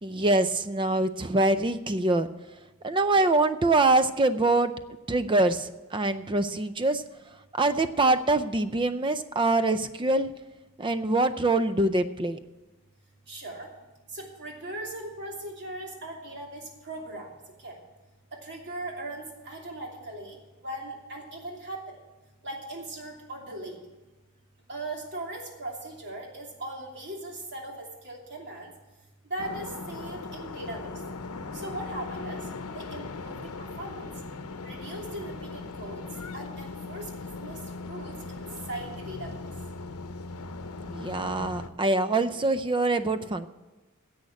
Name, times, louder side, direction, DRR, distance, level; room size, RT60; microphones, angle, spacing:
voice 1, 0.0-2.3 2.8-4.7 5.1-7.0 7.5-10.3 10.8-12.4 40.8-43.5, right 2 dB, 20° right, 11 dB, 0.5 m, -24 dB
voice 2, 13.3-13.7 14.1-17.3 17.6-17.8 18.3-22.0 22.4-23.8 24.7-28.7 29.3-31.0 31.5-32.5 32.7-34.1 34.6-36.0 36.3-39.3, right 1 dB, 55° right, 0 dB, 2.8 m, -39 dB
sound 1, 29.4-41.7, left 3 dB, 75° left, 0.8 m, -39 dB
10.5 x 7.8 x 8.3 m, 1.1 s
head